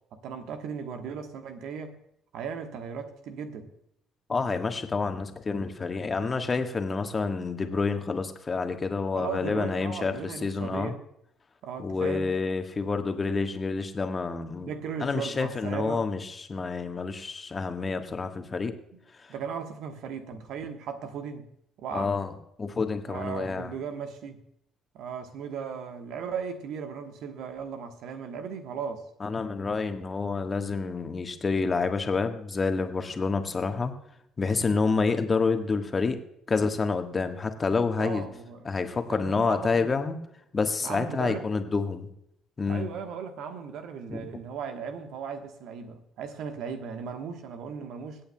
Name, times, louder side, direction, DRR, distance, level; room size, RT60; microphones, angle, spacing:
voice 1, 0.1-2.0 2.3-3.7 9.1-11.0 11.6-12.3 14.6-16.0 19.3-21.5 21.8-22.1 23.1-24.4 24.9-29.1 38.0-38.7 39.1-39.9 40.8-41.5 42.7-48.2, right 6 dB, 65° right, 1.2 m, -37 dB
voice 2, 4.3-10.9 11.8-14.7 15.0-18.7 21.9-23.7 29.2-33.9 34.4-36.2 36.5-38.2 38.6-40.2 40.5-42.1 42.6-42.9 44.1-44.3, left 4 dB, 35° left, 1.4 m, -28 dB
25.0 x 8.7 x 2.3 m
figure-of-eight pair, 50°, 0 cm